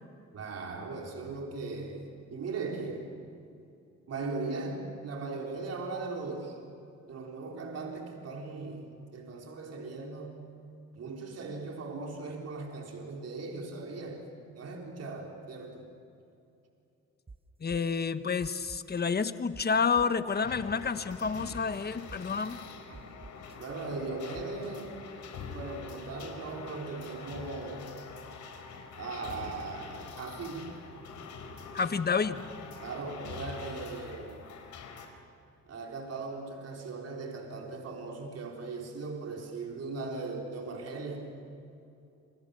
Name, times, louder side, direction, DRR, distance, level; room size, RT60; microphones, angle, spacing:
voice 1, 0.3-3.1 4.1-6.6 7.1-10.5 10.9-14.3 14.5-15.9 19.0-19.1 22.9-23.1 23.5-25.0 25.5-27.9 29.0-30.7 32.8-34.4 35.7-41.3, right 3 dB, 55° right, 1 dB, 4.1 m, -39 dB
sound 1, 17.3-17.4 17.7-17.9 18.4-19.0 19.5-19.6 19.9-20.2 20.7-21.6 22.1-22.4 22.9-23.6 24.3-24.7, right 3 dB, 20° right, 1.0 m, -48 dB
voice 2, 17.6-22.6 31.7-32.5, left 5 dB, 30° left, 11 dB, 1.3 m, -29 dB
sound 2, 20.3-35.1, left 5 dB, 75° left, 4.3 m, -45 dB
29.5 x 25.5 x 6.9 m, 2.7 s
cardioid pair, 90°, 30 cm